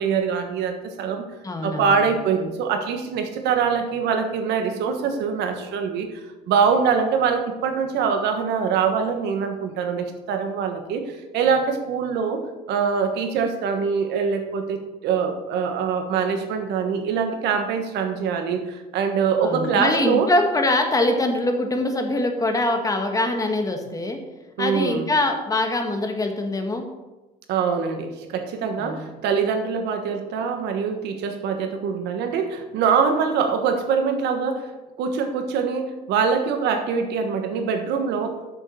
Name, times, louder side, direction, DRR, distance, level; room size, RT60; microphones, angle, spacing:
voice 1, 0.0-1.2 1.6-6.2 6.5-12.4 12.7-20.3 24.6-25.0 27.5-34.7 35.0-38.4, right 6 dB, 80° right, 6 dB, 1.4 m, -24 dB
voice 2, 1.4-2.0 19.4-24.2 24.6-26.9 28.8-29.1, left 2 dB, 20° left, 4 dB, 1.5 m, -23 dB
7.4 x 6.6 x 6.3 m, 1.1 s
cardioid pair, 110°, 17 cm